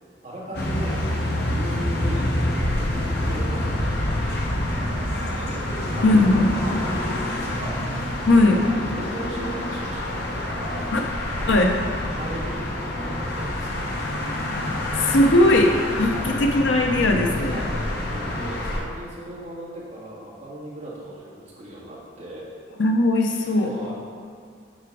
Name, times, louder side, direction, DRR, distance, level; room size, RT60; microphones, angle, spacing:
voice 1, 0.2-1.1 1.4-2.3 2.8-4.0 4.6-7.8 8.6-10.9 12.1-13.9 16.0-16.4 17.5-22.5 23.5-23.9, right 1 dB, 40° right, -7 dB, 2.1 m, -37 dB
sound 1, 0.5-18.8, left 1 dB, 55° left, 1.0 m, -27 dB
voice 2, 6.0-6.5 8.3-8.6 10.9-11.0 11.5-11.8 12.0-12.1 14.5-14.6 15.0-17.7 22.8-23.7, left 1 dB, 70° left, 2 dB, 0.6 m, -19 dB
sound 2, 6.8-9.0, equal, 90° right, 1.8 m, -44 dB
8.0 x 4.9 x 4.8 m, 2.2 s
head